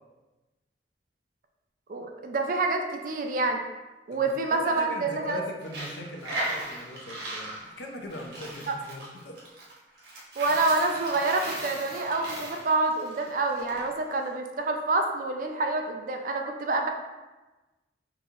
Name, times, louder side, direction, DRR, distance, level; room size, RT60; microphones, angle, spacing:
voice 1, 1.9-3.6 4.1-5.4 8.7-8.8 10.4-16.9, right 3 dB, 50° right, 4 dB, 0.4 m, -27 dB
voice 2, 4.1-9.4, left 1 dB, 75° left, 2 dB, 0.5 m, -40 dB
Coin (dropping), 5.6-13.8, right 1 dB, 80° right, 1.0 m, -37 dB
3.9 x 2.8 x 2.4 m, 1.1 s
head